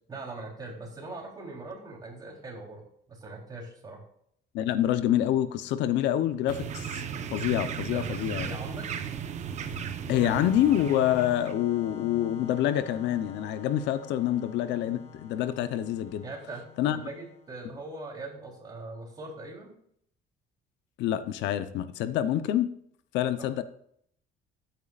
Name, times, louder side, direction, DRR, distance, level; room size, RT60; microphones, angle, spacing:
voice 1, 0.1-4.0 7.9-8.9 16.2-19.7 23.4-23.5, right 2 dB, 20° right, -2 dB, 3.6 m, -41 dB
voice 2, 4.5-7.0 7.3-8.5 10.1-16.3 16.8-17.0 21.0-22.7 23.1-23.6, left 11 dB, 80° left, 12 dB, 0.8 m, -27 dB
sound 1, 6.5-11.5, right 7 dB, 40° right, 0.9 m, -36 dB
Organ, 10.1-17.6, left 7 dB, 35° left, 1.4 m, -45 dB
14.0 x 9.2 x 2.5 m, 0.67 s
cardioid pair, 165°, 18 cm